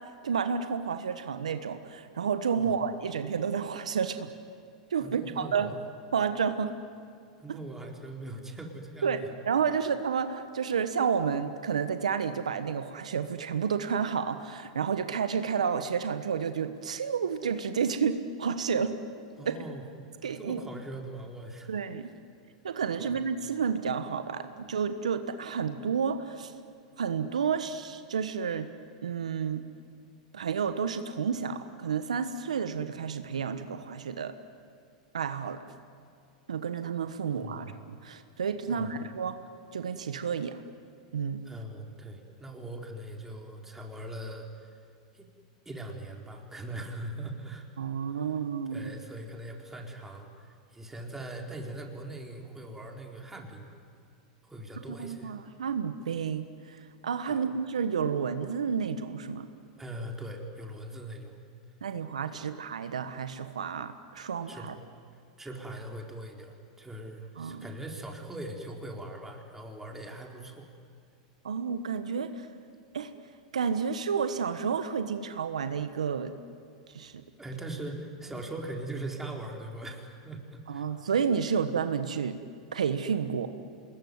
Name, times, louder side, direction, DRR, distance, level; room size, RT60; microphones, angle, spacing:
voice 1, 0.2-4.3 4.9-5.7 6.1-6.8 9.0-19.0 19.4-19.6 20.2-20.6 21.7-22.1 22.6-26.5 27.0-28.7 29.0-29.6 30.3-34.3 35.1-35.6 36.5-37.7 38.0-39.4 39.7-40.6 41.1-41.4 47.8-48.9 55.0-59.5 61.8-64.8 67.4-67.6 71.4-72.5 72.9-73.1 73.5-76.3 76.9-77.2 80.7-82.4 82.7-83.5, right 6 dB, 85° right, 10 dB, 1.2 m, -30 dB
voice 2, 5.0-5.7 7.4-9.3 19.4-19.8 20.3-21.7 23.0-23.2 37.3-37.8 38.6-38.9 41.4-44.8 45.1-45.3 45.7-47.7 48.1-48.4 48.7-53.7 54.4-55.3 57.2-57.5 59.8-61.4 62.3-62.4 64.5-64.7 65.4-70.7 77.4-80.9, right 1 dB, 10° right, 1 dB, 4.3 m, -41 dB
26.5 x 21.0 x 9.6 m, 2.3 s
hypercardioid pair, 100°, 4 cm